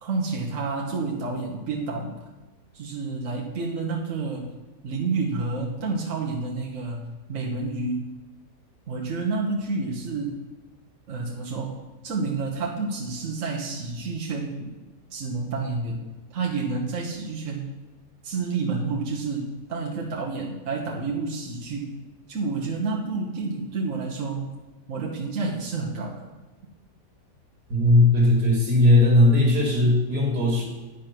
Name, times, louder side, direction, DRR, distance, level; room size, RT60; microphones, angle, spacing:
voice 1, 0.0-2.1 2.7-4.5 4.8-8.1 8.9-10.4 11.1-14.7 15.1-16.0 16.3-17.7 18.2-22.0 22.3-24.5 24.9-26.3, right 3 dB, 55° right, -2 dB, 1.5 m, -29 dB
voice 2, 27.7-30.6, left 1 dB, 70° right, -1 dB, 2.6 m, -18 dB
10.0 x 5.3 x 5.9 m, 1.2 s
omnidirectional pair, 1.8 m